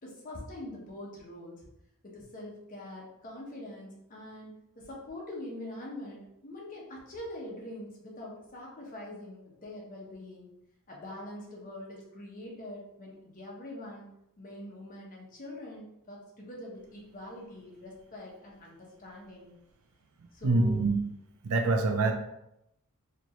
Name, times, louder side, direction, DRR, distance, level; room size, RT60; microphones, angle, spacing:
voice 1, 0.0-1.7 2.0-10.5 10.9-14.1 14.4-19.5 20.3-20.9, left 1 dB, 40° left, -4 dB, 1.1 m, -44 dB
voice 2, 20.4-21.0 21.4-22.1, right 3 dB, 70° right, 5 dB, 0.5 m, -25 dB
4.4 x 2.6 x 3.0 m, 0.83 s
head